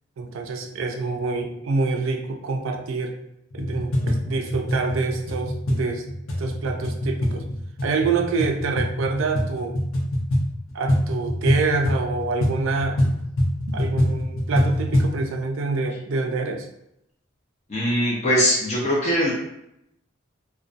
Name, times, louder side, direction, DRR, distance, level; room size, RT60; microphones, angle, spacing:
voice 1, 0.2-3.2 3.5-6.0 6.4-7.4 7.8-9.8 10.7-13.0 13.7-16.7, right 3 dB, 75° right, 4 dB, 0.4 m, -26 dB
sound 1, 3.5-15.2, equal, 85° left, 0.6 m, -25 dB
voice 2, 17.7-19.3, equal, 35° left, -5 dB, 0.5 m, -21 dB
2.6 x 2.2 x 2.4 m, 0.82 s
head